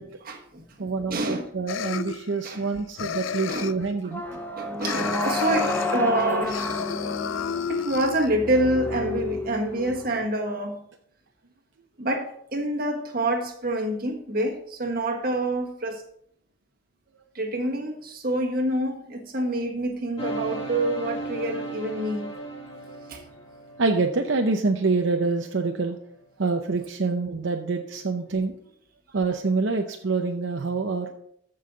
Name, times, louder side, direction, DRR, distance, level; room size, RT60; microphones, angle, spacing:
voice 1, 0.0-1.5 2.4-2.6 3.5-3.7 4.0-6.9 7.7-10.8 12.0-16.0 17.3-22.3 23.1-23.2, right 1 dB, 50° right, 3 dB, 1.5 m, -27 dB
voice 2, 0.8-4.2 23.8-26.0 26.4-28.5 29.1-31.1, right 3 dB, 75° right, 4 dB, 0.7 m, -26 dB
sound 1, 1.7-2.7 3.0-3.9 4.8-6.0 6.4-8.3, left 7 dB, 90° left, 0.4 m, -31 dB
sound 2, 4.1-10.1, left 2 dB, 10° left, 0.9 m, -30 dB
sound 3, 20.2-25.2, right 2 dB, 30° left, 2.0 m, -36 dB
14.0 x 5.5 x 4.0 m, 0.68 s
head